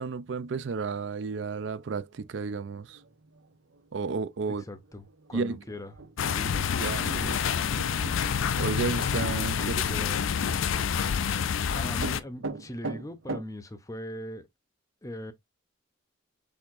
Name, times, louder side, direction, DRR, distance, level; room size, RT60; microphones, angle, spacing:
voice 1, 0.0-3.0 3.9-4.6 5.3-5.6 6.8-7.4 8.6-9.6 9.9-10.0, right 4 dB, 60° right, 0.4 m, -32 dB
sound 1, 1.7-13.4, right 3 dB, 80° right, 0.8 m, -44 dB
voice 2, 4.5-6.0 6.2-6.5 9.4-10.2 11.7-14.5 15.0-15.3, left 1 dB, 15° left, 0.6 m, -40 dB
sound 2, 6.2-12.2, left 7 dB, 75° left, 0.4 m, -28 dB
6.3 x 3.4 x 2.5 m
head